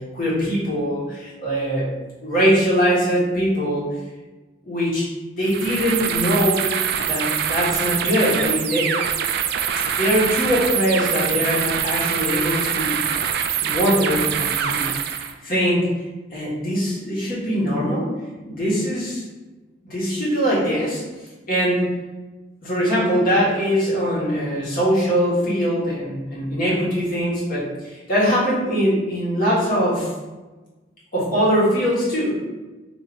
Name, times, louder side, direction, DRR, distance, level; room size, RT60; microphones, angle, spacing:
voice 1, 0.0-1.9 2.2-3.9 4.6-6.7 7.1-8.9 9.9-12.9 13.5-15.9 16.3-18.1 18.4-19.2 19.8-21.0 21.5-21.8 22.6-30.1 31.1-32.3, equal, 50° left, -7 dB, 1.5 m, -22 dB
sound 1, 5.4-15.3, right 8 dB, 60° right, 0.3 m, -24 dB
3.4 x 2.9 x 3.8 m, 1.2 s
head